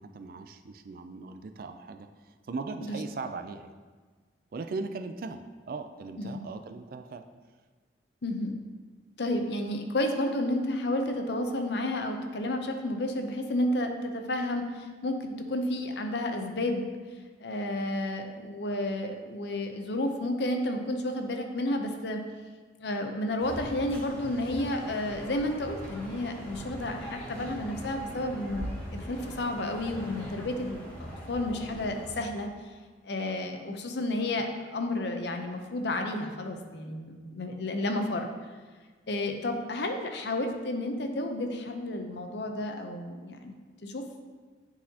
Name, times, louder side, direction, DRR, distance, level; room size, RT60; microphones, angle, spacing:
voice 1, 0.0-3.8 4.5-7.2, right 3 dB, 50° right, 8 dB, 0.3 m, -39 dB
voice 2, 8.2-8.6 9.2-16.9 17.4-22.2 22.8-32.5 33.0-38.3 39.1-44.0, left 1 dB, 65° left, 5 dB, 0.6 m, -31 dB
sound 1, 23.4-32.1, equal, 10° left, 1.8 m, -41 dB
9.9 x 4.1 x 2.8 m, 1.4 s
head